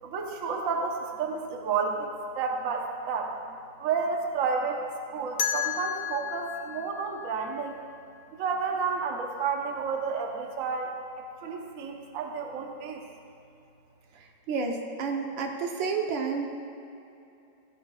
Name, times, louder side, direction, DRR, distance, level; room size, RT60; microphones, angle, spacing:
voice 1, 0.0-3.3 3.8-4.8 5.1-7.8 8.3-13.0, right 5 dB, 50° right, 2 dB, 1.2 m, -31 dB
sound 1, 5.4-8.3, left 8 dB, 60° left, 1.2 m, -33 dB
voice 2, 14.2-16.5, right 5 dB, 85° right, 2 dB, 1.7 m, -30 dB
15.5 x 14.0 x 2.4 m, 2.7 s
omnidirectional pair, 2.0 m